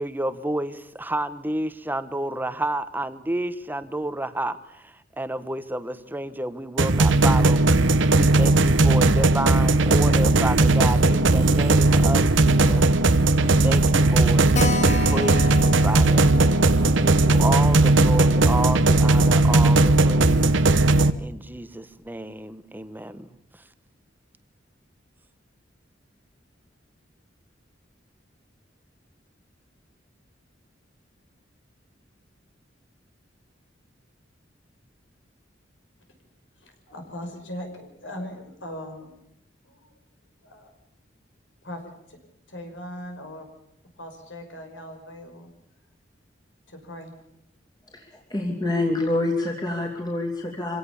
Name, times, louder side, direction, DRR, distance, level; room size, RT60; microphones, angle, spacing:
voice 1, 0.0-7.6 8.1-12.9 13.2-16.3 16.8-20.5 21.2-23.3, right 1 dB, 10° right, 12 dB, 1.1 m, -30 dB
sound 1, 6.8-21.1, right 2 dB, 85° right, 1.1 m, -18 dB
Keyboard (musical), 14.6-19.6 19.9-20.0 20.3-20.4 20.6-20.7 21.3-21.6, left 4 dB, 40° left, 1.5 m, -35 dB
voice 2, 36.6-39.1 39.6-39.9 40.4-40.7 41.6-42.2 42.5-43.5 44.0-45.5 46.7-47.1, equal, 85° left, 5 dB, 5.5 m, -39 dB
voice 3, 47.9-50.8, left 2 dB, 20° left, 0 dB, 3.1 m, -26 dB
25.0 x 17.5 x 7.1 m, 0.82 s
head